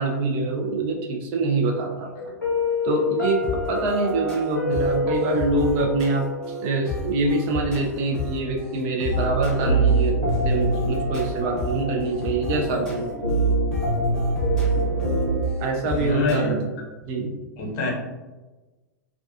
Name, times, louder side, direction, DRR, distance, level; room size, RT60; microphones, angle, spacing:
voice 1, 0.0-2.1 2.8-3.4 3.7-6.3 6.6-13.3 14.7-15.0 15.6-16.7 17.0-17.3, right 2 dB, 40° right, 1 dB, 0.4 m, -25 dB
Piano, 2.4-7.4, left 3 dB, 85° left, 0.5 m, -28 dB
sound 1, 3.4-16.4, left 2 dB, 5° left, 0.8 m, -34 dB
sound 2, 9.1-15.4, right 2 dB, 85° right, 0.8 m, -24 dB
voice 2, 15.8-16.7 17.6-17.9, left 2 dB, 40° left, -2 dB, 0.7 m, -26 dB
2.3 x 2.3 x 2.3 m, 1.2 s
figure-of-eight pair, 95°, 10 cm